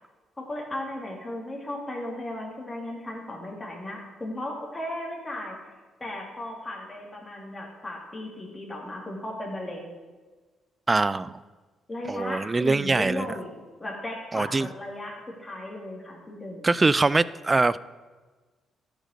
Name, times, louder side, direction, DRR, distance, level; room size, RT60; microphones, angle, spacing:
voice 1, 0.4-5.6 6.0-9.9 11.9-16.7, left 1 dB, 20° left, -1 dB, 2.3 m, -36 dB
voice 2, 10.9-11.4 12.1-13.2 14.3-14.7 16.6-17.8, right 3 dB, 25° right, 18 dB, 0.3 m, -23 dB
11.5 x 5.2 x 6.4 m, 1.3 s
cardioid pair, 90°, 0 cm